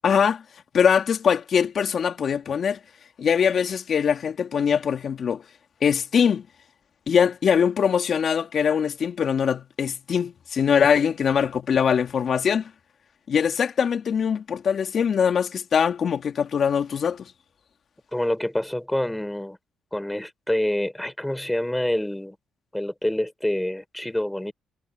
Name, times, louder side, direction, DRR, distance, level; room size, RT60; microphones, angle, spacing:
voice 1, 0.0-0.4 0.7-2.8 3.2-5.4 5.8-6.5 7.1-12.7 13.3-17.3, left 7 dB, 55° left, 2.6 m, -22 dB
voice 2, 18.1-19.6 19.9-22.4 22.7-24.5, left 1 dB, 5° left, 4.6 m, -27 dB
cardioid pair, 90°, 0 cm